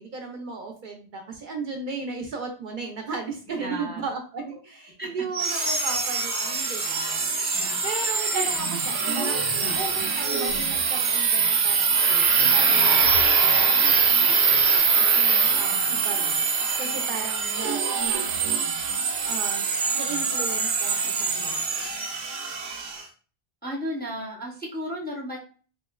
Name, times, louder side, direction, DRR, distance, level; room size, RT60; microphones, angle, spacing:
voice 1, 0.0-7.3 7.8-18.4 19.3-21.9, right 4 dB, 60° right, 2 dB, 0.6 m, -36 dB
voice 2, 3.6-4.0 4.5-4.6 5.0-5.1 7.5-7.9 8.3-8.5 8.8-8.9 9.5-9.8 23.6-25.4, equal, 15° left, -2 dB, 0.5 m, -34 dB
sound 1, 5.3-23.0, right 5 dB, 85° right, 0.9 m, -23 dB
4.2 x 2.0 x 2.2 m, 0.39 s
omnidirectional pair, 1.1 m